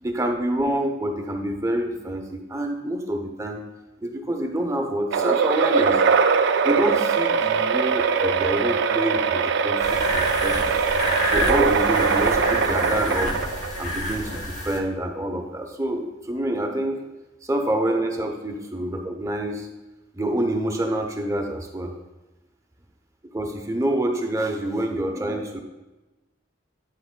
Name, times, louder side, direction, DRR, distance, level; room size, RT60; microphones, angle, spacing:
voice 1, 0.0-3.6 4.0-6.0 6.6-10.8 11.3-13.4 13.8-17.0 17.4-19.7 20.1-21.9 23.3-25.6, right 1 dB, 15° right, 3 dB, 0.7 m, -27 dB
sound 1, 5.1-13.9, right 5 dB, 60° right, 0.4 m, -22 dB
sound 2, 9.8-14.8, left 1 dB, 35° left, 1.0 m, -28 dB
8.9 x 7.7 x 2.2 m, 1.1 s
head